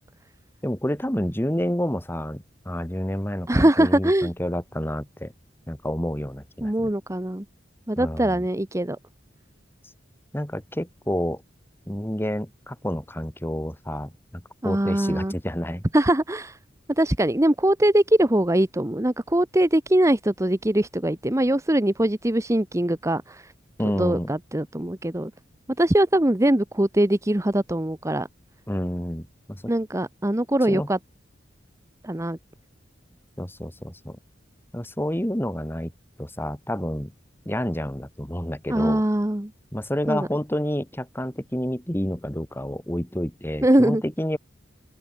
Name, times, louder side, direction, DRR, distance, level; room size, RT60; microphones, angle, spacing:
voice 1, 0.6-5.3 5.7-6.9 8.0-8.4 10.3-11.4 11.9-15.8 23.8-24.3 28.7-29.6 30.7-30.9 33.4-34.2 34.7-35.9 36.2-37.1 37.5-39.0 39.7-44.4, equal, 10° left, 2.3 m, -29 dB
voice 2, 3.5-4.3 6.6-7.4 7.9-9.0 14.6-15.3 15.9-16.6 16.9-23.5 24.0-25.3 25.8-28.3 29.7-31.0 32.0-32.4 38.7-39.5 40.1-40.3 43.6-44.0, right 1 dB, 15° right, 1.0 m, -22 dB
open air
head